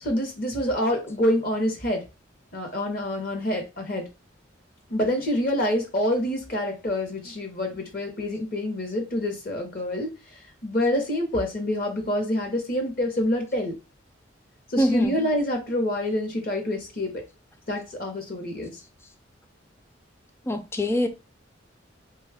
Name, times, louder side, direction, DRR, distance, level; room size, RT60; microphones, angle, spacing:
voice 1, 0.0-2.0 2.5-4.0 4.9-13.8 14.7-17.2 17.7-18.8, left 1 dB, 50° left, 0.8 m, -27 dB
voice 2, 14.8-15.2 20.5-21.1, equal, 15° left, 0.4 m, -23 dB
3.2 x 2.3 x 3.4 m
head